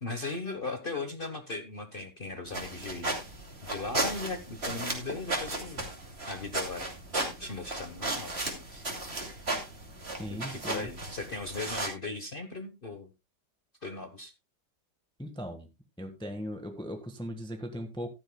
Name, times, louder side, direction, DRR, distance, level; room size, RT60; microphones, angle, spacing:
voice 1, 0.0-3.1 3.6-5.9 6.3-6.9 7.4-8.8 10.3-13.1 13.8-14.3, left 3 dB, 35° left, 7 dB, 1.1 m, -38 dB
sound 1, 2.5-11.9, right 2 dB, 35° right, 2.9 m, -35 dB
voice 2, 10.2-10.9 15.2-15.7 16.0-18.1, equal, 5° left, 5 dB, 1.3 m, -38 dB
15.0 x 12.0 x 2.2 m, 0.25 s
omnidirectional pair, 1.9 m